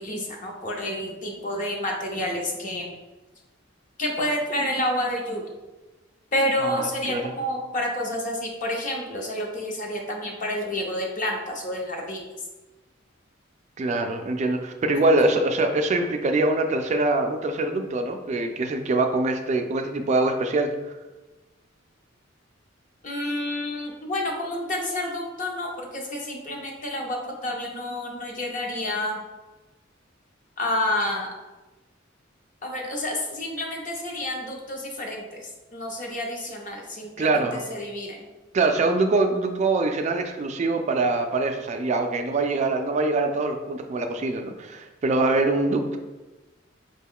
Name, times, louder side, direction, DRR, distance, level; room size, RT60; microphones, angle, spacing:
voice 1, 0.0-2.9 4.0-5.4 6.3-12.2 15.2-15.4 23.0-29.2 30.6-31.3 32.6-38.3, left 1 dB, 40° left, 0 dB, 0.7 m, -29 dB
voice 2, 6.6-7.3 13.8-20.7 37.2-37.6 38.5-46.0, right 2 dB, 35° right, 5 dB, 0.3 m, -24 dB
4.9 x 2.2 x 3.6 m, 1.1 s
head